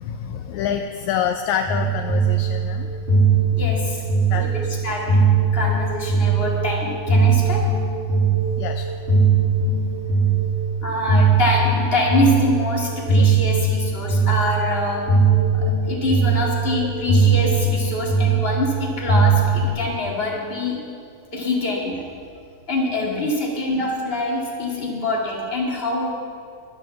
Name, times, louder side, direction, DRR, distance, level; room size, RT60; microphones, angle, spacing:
voice 1, 0.0-2.9 4.3-4.7 8.6-8.9 23.1-23.2, left 8 dB, 80° left, 6 dB, 1.9 m, -27 dB
sound 1, 1.7-19.7, right 4 dB, 45° right, 5.5 m, -20 dB
voice 2, 3.6-4.0 4.3-5.1 5.5-7.7 10.8-15.1 15.5-20.8 21.3-22.0 22.7-26.1, left 2 dB, 20° left, -3 dB, 2.1 m, -25 dB
12.0 x 10.5 x 6.9 m, 2.2 s
omnidirectional pair, 3.5 m